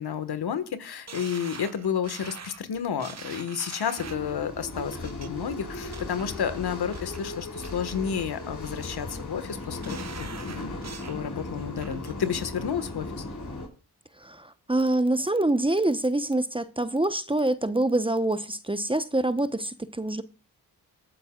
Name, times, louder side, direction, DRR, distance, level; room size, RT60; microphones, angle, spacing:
voice 1, 0.0-10.7 11.0-13.1, left 7 dB, 70° left, 1.5 m, -31 dB
sound 1, 1.1-4.3 4.9-5.3 5.7-6.3 6.7-7.2 7.6-8.3 8.6-9.2 9.6-11.2 11.6-12.1 12.5-12.6, right 6 dB, 40° right, 1.2 m, -44 dB
sound 2, 3.9-13.7, left 2 dB, 50° left, 6.1 m, -37 dB
voice 2, 14.2-20.2, right 2 dB, 15° right, 0.9 m, -25 dB
26.5 x 8.9 x 2.4 m
cardioid pair, 60°, 40 cm